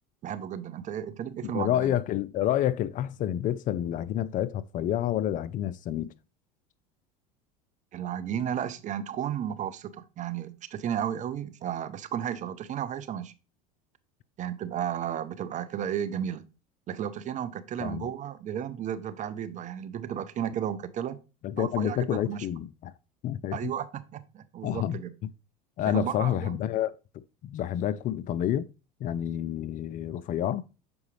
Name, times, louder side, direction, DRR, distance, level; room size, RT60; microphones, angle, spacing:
voice 1, 0.2-1.9 7.9-13.3 14.4-16.5 16.9-21.2 21.6-22.5 23.5-25.1 25.8-26.6, right 9 dB, 40° right, 0.7 m, -33 dB
voice 2, 1.4-6.1 17.8-18.1 21.4-22.9 23.2-23.7 24.6-25.0 25.8-28.7 29.0-30.6, left 11 dB, 40° left, 0.4 m, -29 dB
7.0 x 4.8 x 3.2 m
supercardioid pair, 100°, 20 cm